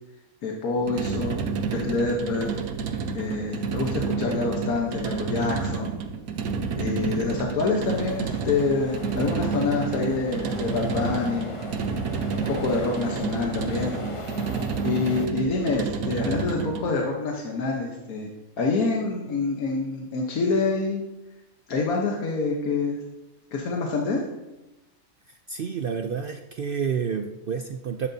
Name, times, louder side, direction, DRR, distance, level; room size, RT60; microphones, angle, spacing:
voice 1, 0.4-2.6 3.1-5.9 6.8-11.5 12.5-13.9 14.8-18.3 18.6-21.0 21.7-23.0 23.5-24.2, left 3 dB, 85° left, 0 dB, 1.5 m, -26 dB
sound 1, 0.8-16.9, right 5 dB, 90° right, 1.3 m, -30 dB
sound 2, 7.9-15.3, left 2 dB, 25° left, 0.8 m, -39 dB
voice 2, 25.3-28.1, right 6 dB, 65° right, 6 dB, 0.5 m, -29 dB
12.0 x 10.0 x 2.7 m, 1.0 s
omnidirectional pair, 1.5 m